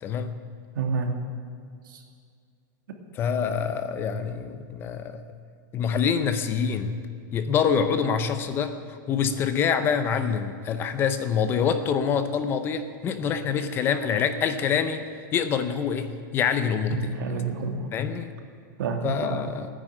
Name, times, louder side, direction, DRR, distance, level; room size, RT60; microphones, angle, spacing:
voice 1, 0.0-0.3 3.1-5.2 5.7-7.0 7.3-8.7 9.1-15.0 15.3-17.2 17.9-18.3 19.0-19.7, left 7 dB, 20° left, 10 dB, 0.7 m, -26 dB
voice 2, 0.7-1.1 1.9-2.0 16.9-17.9 18.8-19.4, right 5 dB, 85° right, 3 dB, 2.5 m, -29 dB
15.5 x 10.0 x 8.8 m, 2.2 s
supercardioid pair, 165°, 11 cm